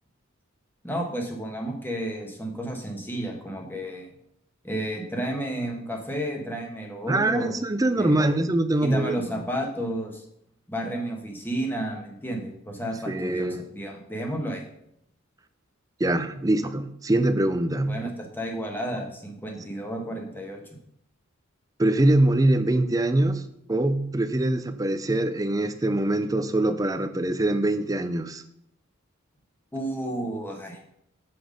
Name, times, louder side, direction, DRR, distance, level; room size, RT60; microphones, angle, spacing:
voice 1, 0.8-4.1 4.6-7.5 8.0-8.5 8.8-10.2 10.7-14.7 17.9-20.6 29.7-30.8, right 1 dB, 10° left, 1 dB, 1.3 m, -32 dB
voice 2, 7.1-9.4 13.1-13.6 16.0-18.0 21.8-28.4, right 1 dB, 15° right, 9 dB, 0.5 m, -23 dB
6.9 x 6.1 x 5.2 m, 0.74 s
head